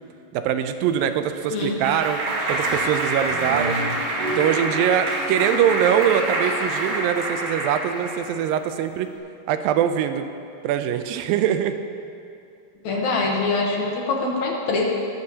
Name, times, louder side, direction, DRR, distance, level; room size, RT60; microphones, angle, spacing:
voice 1, 0.3-2.2 2.5-3.8 4.4-9.1 9.5-10.3 10.6-11.8, right 9 dB, 85° right, 9 dB, 2.4 m, -22 dB
Clapping, 1.0-8.3, right 1 dB, 70° right, 3.4 m, -26 dB
voice 2, 12.8-14.8, left 3 dB, 65° left, -1 dB, 2.2 m, -24 dB
20.5 x 11.5 x 2.9 m, 2.5 s
omnidirectional pair, 4.0 m